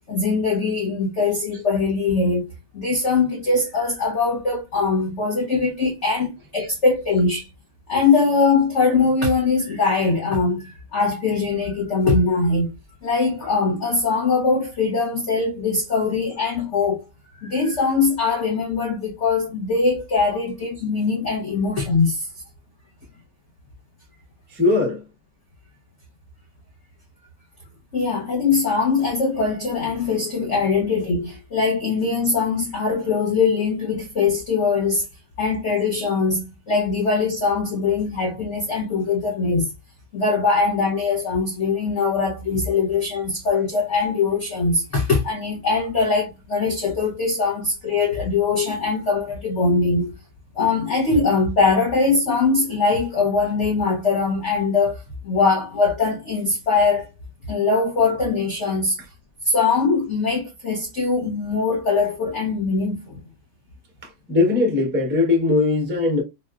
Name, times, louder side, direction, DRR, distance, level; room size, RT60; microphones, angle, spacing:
voice 1, 0.1-2.5 2.7-7.5 7.9-12.7 13.0-17.0 17.4-22.3 27.9-35.0 35.4-39.7 40.1-50.1 50.6-57.1 57.5-59.0 59.5-63.2, left 4 dB, 65° left, 0.7 m, -21 dB
voice 2, 24.5-25.0 59.0-59.1 64.0-66.2, left 3 dB, 15° right, 0.3 m, -20 dB
4.1 x 2.1 x 2.3 m
omnidirectional pair, 2.2 m